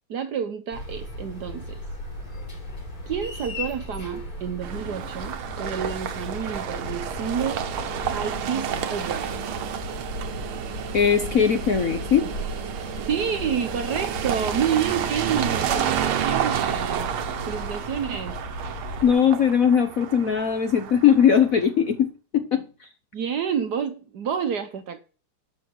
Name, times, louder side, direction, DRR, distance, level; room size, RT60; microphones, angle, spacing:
voice 1, 0.1-1.8 3.1-7.6 8.1-9.3 13.0-17.1 17.5-18.4 23.1-25.0, right 7 dB, 60° right, 1.3 m, -29 dB
sound 1, 0.7-19.1, left 1 dB, 80° left, 5.6 m, -36 dB
sound 2, 4.6-21.6, right 9 dB, 75° right, 1.8 m, -30 dB
voice 2, 10.9-12.3 19.0-22.1 22.3-22.6, left 8 dB, 55° left, 1.0 m, -19 dB
12.0 x 6.4 x 6.2 m
omnidirectional pair, 2.4 m